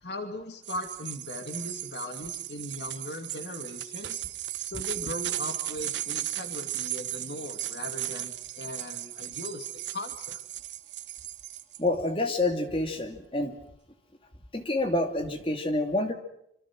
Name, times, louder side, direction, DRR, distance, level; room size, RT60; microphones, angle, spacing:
voice 1, 0.0-4.2 4.6-10.4, left 1 dB, 75° left, 5 dB, 2.6 m, -39 dB
sound 1, 0.6-11.8, right 14 dB, 90° right, 1.2 m, -36 dB
voice 2, 11.8-13.6 14.5-16.1, left 2 dB, 30° left, 5 dB, 2.5 m, -28 dB
26.0 x 25.5 x 6.1 m, 0.75 s
head